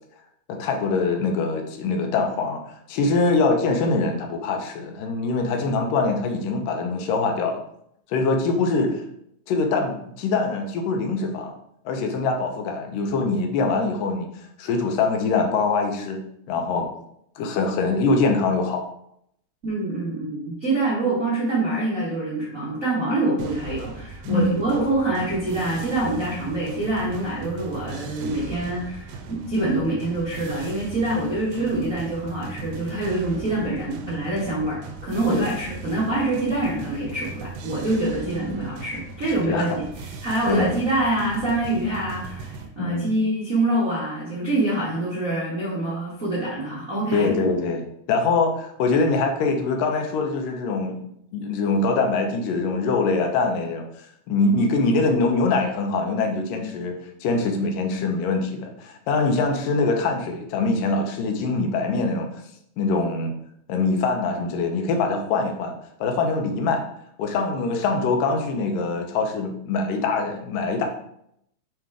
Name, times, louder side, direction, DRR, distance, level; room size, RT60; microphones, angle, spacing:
voice 1, 0.5-7.6 8.1-9.0 9.5-11.5 11.9-14.3 14.6-16.2 16.5-16.9 17.4-18.9 24.2-24.7 35.3-35.4 38.2-38.6 39.5-39.7 40.5-40.7 42.8-43.1 47.1-51.0 51.3-62.3 62.8-63.3 63.7-65.7 66.0-66.8 67.2-70.9, left 3 dB, 70° left, 3 dB, 2.2 m, -23 dB
voice 2, 19.6-47.3, right 2 dB, 65° right, -8 dB, 0.8 m, -25 dB
sound 1, 23.4-42.7, right 4 dB, 85° right, 2.8 m, -38 dB
7.5 x 4.0 x 4.8 m, 0.73 s
omnidirectional pair, 4.6 m